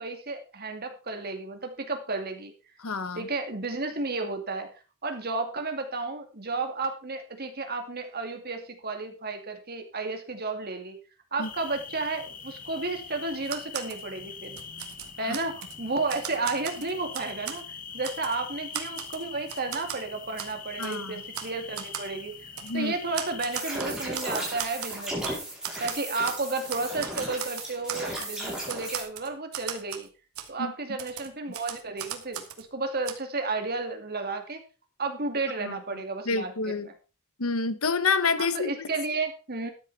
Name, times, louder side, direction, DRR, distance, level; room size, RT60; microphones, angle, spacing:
voice 1, 0.0-2.5 3.1-4.7 5.0-11.0 11.3-14.6 15.2-17.6 17.9-22.3 22.7-25.4 25.8-30.1 30.5-34.6 35.0-36.5 36.8-36.9 38.4-39.7, right 3 dB, 45° right, 2.4 m, -32 dB
voice 2, 2.8-3.3 11.4-11.5 20.8-21.2 22.6-22.9 30.6-30.7 35.6-35.8 36.3-36.9 37.4-38.9, left 4 dB, 75° left, 1.3 m, -28 dB
sound 1, 11.4-23.6, left 6 dB, 40° left, 1.4 m, -43 dB
Typewriter, 13.4-14.0 14.4-15.8 16.1-17.6 18.0-18.4 18.7-20.0 20.4-20.5 20.8-21.0 21.3-21.5 21.8-22.1 22.6-22.7 23.1-25.4 25.6-26.4 26.7-28.4 28.7-30.1 30.4-30.5 31.0-32.6 33.1-33.2, right 9 dB, 80° right, 1.8 m, -37 dB
sound 2, 23.5-29.0, right 1 dB, 5° right, 5.7 m, -35 dB
13.5 x 10.0 x 4.2 m
head